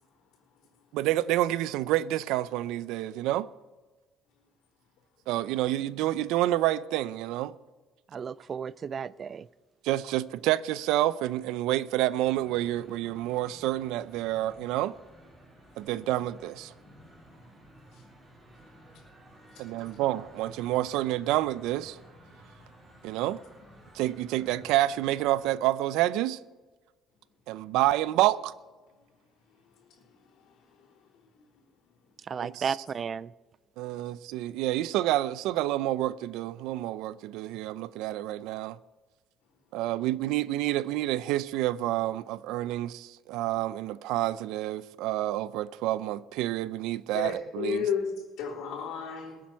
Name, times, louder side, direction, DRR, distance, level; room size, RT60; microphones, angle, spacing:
voice 1, 0.9-3.5 5.3-7.5 9.8-14.9 15.8-16.7 19.6-22.0 23.0-23.4 23.9-26.4 27.5-28.5 32.4-32.5 33.8-38.8 39.7-47.9, right 15 dB, 90° right, 0.5 m, -28 dB
voice 2, 8.1-9.5 32.2-33.3, right 6 dB, 30° right, 0.3 m, -34 dB
sound 1, 12.2-25.5, right 1 dB, 15° right, 4.5 m, -54 dB
voice 3, 30.3-30.9 47.1-48.1 48.4-49.4, left 6 dB, 70° left, 3.8 m, -33 dB
21.0 x 8.6 x 4.6 m
cardioid pair, 155°, 0 cm